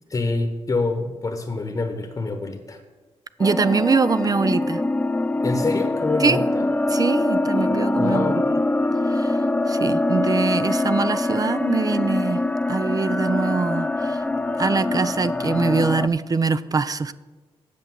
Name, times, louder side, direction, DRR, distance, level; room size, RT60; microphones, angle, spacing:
voice 1, 0.1-2.8 5.4-6.7 8.0-8.4, left 3 dB, 35° left, 5 dB, 1.0 m, -26 dB
sound 1, 3.4-16.1, left 2 dB, 15° left, 0.5 m, -23 dB
voice 2, 3.4-4.8 6.2-6.4 6.9-8.4 9.0-9.4 9.7-12.4 12.7-14.2 14.6-17.1, right 4 dB, 35° right, 14 dB, 0.4 m, -23 dB
8.4 x 6.6 x 7.6 m, 1.3 s
cardioid pair, 70°, 11 cm